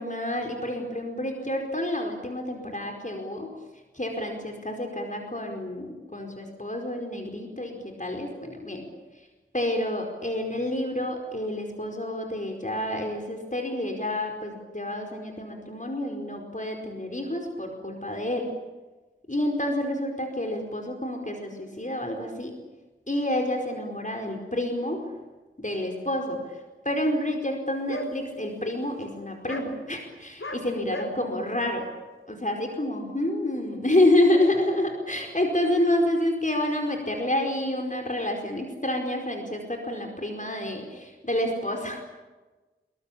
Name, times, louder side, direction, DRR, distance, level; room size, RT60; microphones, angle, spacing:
voice 1, 0.0-3.6 3.9-8.9 9.5-18.5 19.3-22.5 23.1-25.1 25.6-26.6 26.8-31.9 32.3-42.0, left 1 dB, 40° left, 3 dB, 4.9 m, -28 dB
sound 1, 27.9-28.1 28.6-28.7 29.0-29.1 29.4-29.6 30.4-30.6 30.9-31.1, left 1 dB, 80° left, 4.3 m, -34 dB
27.0 x 23.5 x 8.7 m, 1.2 s
wide cardioid pair, 45°, 21 cm